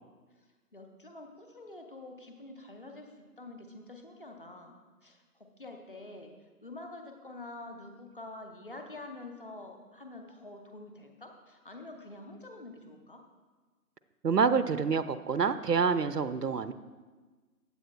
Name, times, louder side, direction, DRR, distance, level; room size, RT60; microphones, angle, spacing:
voice 1, 0.7-6.3 6.6-13.2, left 2 dB, 35° left, 4 dB, 0.9 m, -47 dB
voice 2, 14.2-16.7, right 5 dB, 80° right, 12 dB, 0.7 m, -27 dB
15.0 x 8.9 x 2.3 m, 1.3 s
figure-of-eight pair, 155°, 48 cm